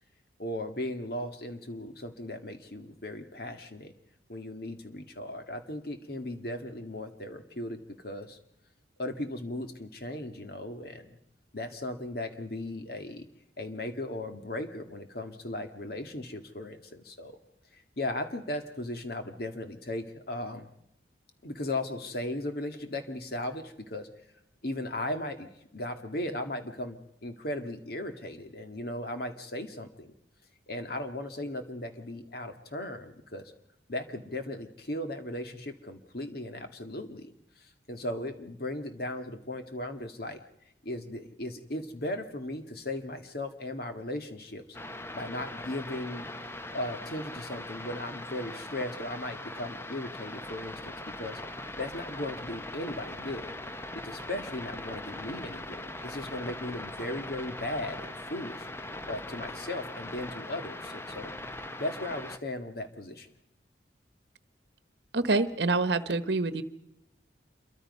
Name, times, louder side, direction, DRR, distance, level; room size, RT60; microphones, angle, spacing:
voice 1, 0.4-3.9 4.3-8.4 9.0-11.2 11.5-13.3 13.6-17.4 17.7-20.7 21.4-24.1 24.6-30.1 30.7-33.5 33.9-40.4 40.8-44.6 45.1-46.3 46.7-51.4 51.8-53.5 54.0-58.7 59.1-63.3, left 1 dB, 55° left, 7 dB, 1.9 m, -37 dB
sound 1, 44.7-62.4, left 1 dB, 15° left, 0.8 m, -41 dB
voice 2, 65.1-66.6, right 3 dB, 65° right, 13 dB, 1.2 m, -26 dB
27.0 x 23.0 x 5.5 m, 0.81 s
head